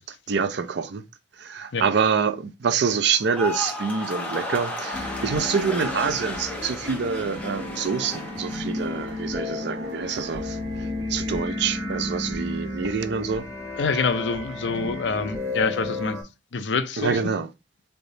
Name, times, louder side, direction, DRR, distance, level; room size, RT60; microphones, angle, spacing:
voice 1, 0.3-1.0 1.4-10.6 11.1-13.5 17.0-17.5, right 6 dB, 65° right, 0.4 m, -26 dB
sound 1, 3.2-9.5 9.8-10.3, left 1 dB, 10° left, 0.9 m, -34 dB
sound 2, 4.9-16.2, left 2 dB, 20° right, 2.3 m, -33 dB
voice 2, 13.8-16.2 16.5-17.2, left 4 dB, 70° left, 0.5 m, -26 dB
3.9 x 3.4 x 2.7 m
head